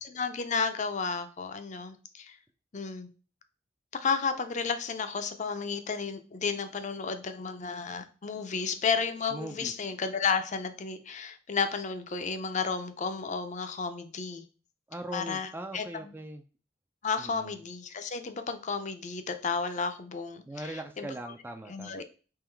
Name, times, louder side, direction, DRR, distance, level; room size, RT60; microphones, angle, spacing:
voice 1, 0.0-2.4 2.7-3.1 3.9-14.4 15.1-15.8 17.0-21.1 21.7-22.0, left 5 dB, 40° left, 9 dB, 0.5 m, -32 dB
voice 2, 9.3-9.7 14.9-16.4 17.2-17.6 20.5-22.0, right 1 dB, 10° right, 7 dB, 0.3 m, -40 dB
3.7 x 3.0 x 4.5 m, 0.36 s
head